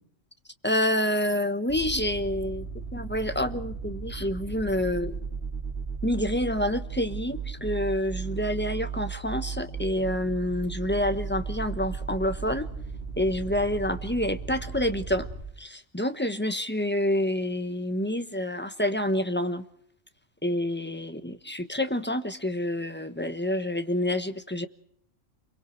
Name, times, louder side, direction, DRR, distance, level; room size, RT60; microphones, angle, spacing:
voice 1, 0.6-2.7 2.9-5.2 6.0-12.7 13.2-15.3 15.6-19.6 20.4-24.7, left 1 dB, 10° left, 9 dB, 1.1 m, -28 dB
sound 1, 1.7-15.4, right 5 dB, 55° right, 5.7 m, -36 dB
29.5 x 23.0 x 4.5 m, 0.67 s
omnidirectional pair, 1.3 m